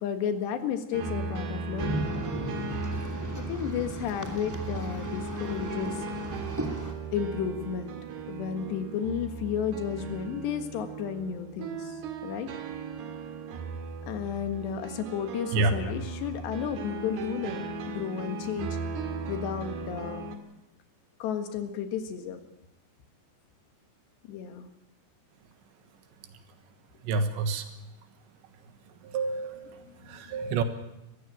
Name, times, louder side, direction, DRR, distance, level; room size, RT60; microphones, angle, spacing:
voice 1, 0.0-2.1 3.5-6.1 7.1-8.0 8.3-12.5 14.1-18.8 19.3-20.3 21.2-22.4 24.3-24.7 29.5-30.4, left 8 dB, 75° left, 7 dB, 3.8 m, -33 dB
sound 1, 0.9-20.4, right 3 dB, 65° right, 3.8 m, -37 dB
sound 2, 1.8-6.9, right 1 dB, 10° right, 1.1 m, -36 dB
voice 2, 27.0-27.7 29.0-29.8 30.1-30.6, right 3 dB, 80° right, 8 dB, 3.6 m, -28 dB
22.0 x 15.0 x 9.1 m, 0.90 s
omnidirectional pair, 5.2 m